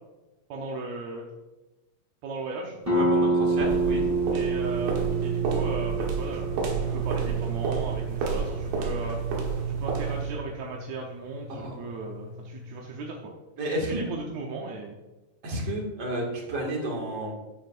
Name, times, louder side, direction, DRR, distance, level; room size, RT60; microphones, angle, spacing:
voice 1, 0.5-1.3 2.2-2.8 4.3-5.0 5.2-9.2 9.7-13.3 13.7-15.0, right 3 dB, 70° right, -1 dB, 1.8 m, -37 dB
sound 1, 2.8-8.3, right 2 dB, 5° right, 3.0 m, -27 dB
voice 2, 2.9-4.0 11.5-11.8 13.6-14.0 15.4-17.3, right 1 dB, 45° right, -1 dB, 2.8 m, -31 dB
sound 2, 3.6-10.4, right 5 dB, 90° right, 3.4 m, -29 dB
sound 3, 7.1-12.9, left 2 dB, 85° left, 1.0 m, -44 dB
12.5 x 9.3 x 2.6 m, 1.1 s
omnidirectional pair, 4.2 m